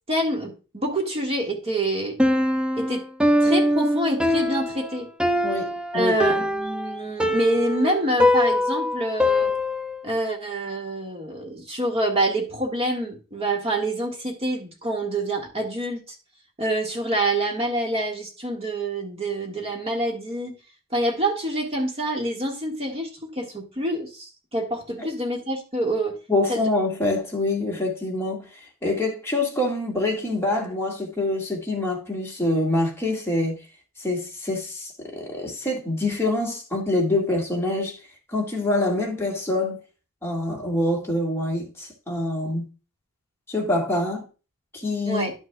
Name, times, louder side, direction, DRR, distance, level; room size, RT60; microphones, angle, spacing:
voice 1, 0.1-2.2 2.8-3.0 3.4-5.1 5.9-9.5 10.0-16.0 16.6-20.5 20.9-26.2 26.5-26.7 45.1-45.3, right 1 dB, 25° right, 1.7 m, -26 dB
Piano, 2.2-10.1, left 1 dB, 5° right, 0.4 m, -22 dB
voice 2, 5.4-6.2 25.0-25.1 26.3-33.5 34.0-38.0 38.3-39.8 40.2-42.7 43.5-44.2 44.7-45.3, left 2 dB, 10° left, 1.8 m, -25 dB
11.0 x 6.2 x 2.3 m
head